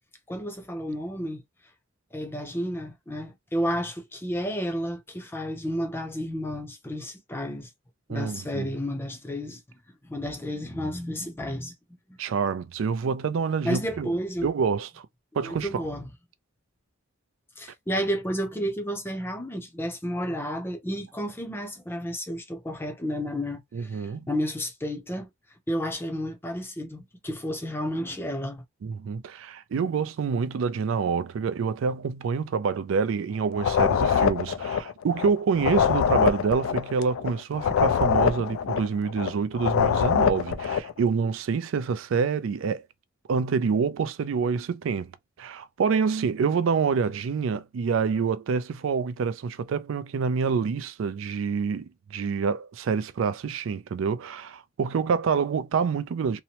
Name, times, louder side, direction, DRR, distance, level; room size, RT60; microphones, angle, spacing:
voice 1, 0.3-1.4 2.1-7.7 8.1-9.6 10.0-11.7 12.1-12.2 13.6-14.5 15.4-16.1 17.6-25.3 25.7-28.6, equal, 10° left, 0.5 m, -31 dB
voice 2, 8.1-8.7 12.2-14.1 14.4-15.1 15.3-15.9 23.7-24.2 28.8-42.9 43.3-45.1 45.4-56.4, right 5 dB, 70° right, 0.3 m, -27 dB
sound 1, 33.5-40.9, left 7 dB, 80° left, 0.3 m, -24 dB
2.9 x 2.0 x 2.8 m
head